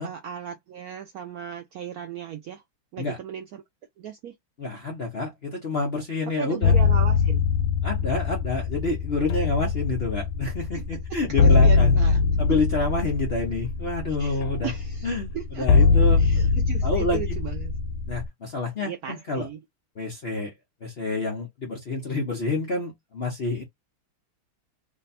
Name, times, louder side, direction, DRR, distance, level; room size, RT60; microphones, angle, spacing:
voice 1, 0.0-2.6 2.9-3.6 4.0-4.3 6.4-7.5 10.7-12.2 12.5-12.6 14.1-15.9 16.2-17.7 18.8-19.6, right 9 dB, 85° right, 0.8 m, -37 dB
voice 2, 4.6-6.7 7.8-12.0 12.4-14.7 15.0-16.5 16.8-17.2 18.1-19.5 20.0-20.5 20.8-23.6, left 3 dB, 55° left, 0.7 m, -28 dB
sound 1, 6.6-18.3, left 5 dB, 85° left, 1.4 m, -22 dB
3.3 x 2.2 x 4.0 m
omnidirectional pair, 2.2 m